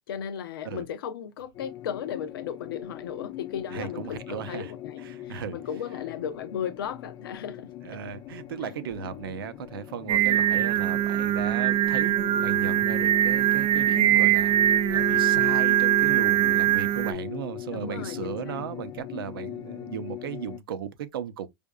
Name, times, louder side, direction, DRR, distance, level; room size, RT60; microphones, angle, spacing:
voice 1, 0.1-7.7 8.6-8.7 14.0-14.4 17.7-18.6, left 8 dB, 85° left, 0.7 m, -36 dB
sound 1, 1.5-20.6, left 12 dB, 40° left, 0.5 m, -39 dB
voice 2, 3.7-4.7 5.0-5.6 7.8-21.5, right 8 dB, 90° right, 0.7 m, -36 dB
Singing, 10.1-17.1, right 12 dB, 40° right, 0.5 m, -22 dB
5.0 x 2.6 x 2.2 m
supercardioid pair, 120°, 12 cm